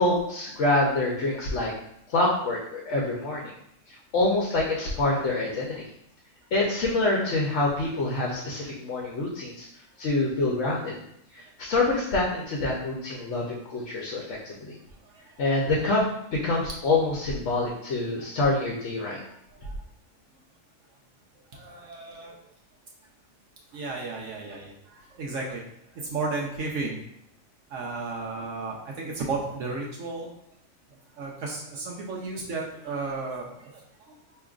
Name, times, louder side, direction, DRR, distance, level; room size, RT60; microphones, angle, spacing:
voice 1, 0.0-1.7 2.1-3.5 4.1-5.9 6.5-9.7 10.0-11.0 11.3-14.7 15.4-16.0 16.4-19.2, left 2 dB, 65° left, -3 dB, 1.0 m, -26 dB
voice 2, 15.0-15.4 19.6-19.7 21.5-22.4 23.7-25.6 25.9-27.0 27.7-30.3 31.2-34.1, right 3 dB, 70° right, -2 dB, 1.0 m, -34 dB
4.8 x 2.9 x 2.4 m, 0.75 s
omnidirectional pair, 1.4 m